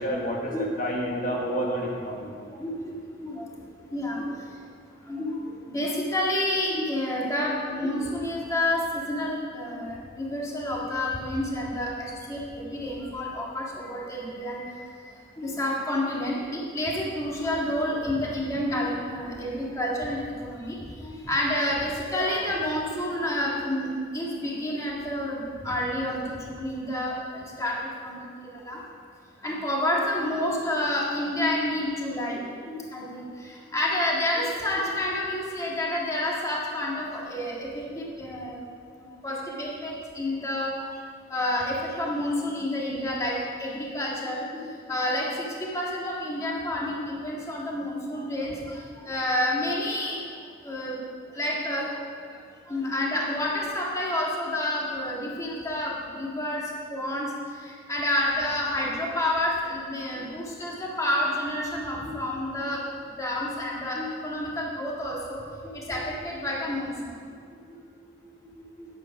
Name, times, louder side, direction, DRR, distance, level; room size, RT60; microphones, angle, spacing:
voice 1, 0.0-2.3, equal, 45° left, -2 dB, 1.5 m, -29 dB
voice 2, 2.6-3.0 3.2-3.4 3.9-4.3 5.1-5.3 5.7-11.9 12.3-14.6 15.4-23.9 24.1-27.8 28.0-28.2 28.5-28.8 29.4-33.2 33.7-38.6 39.2-40.7 41.3-44.5 44.9-45.5 45.7-48.5 49.0-50.2 50.6-50.9 51.4-51.9 52.7-56.6 56.9-57.3 57.9-62.8 63.2-66.9 68.8-68.9, left 1 dB, 15° left, -4 dB, 1.7 m, -29 dB
9.4 x 9.0 x 5.8 m, 2.2 s
head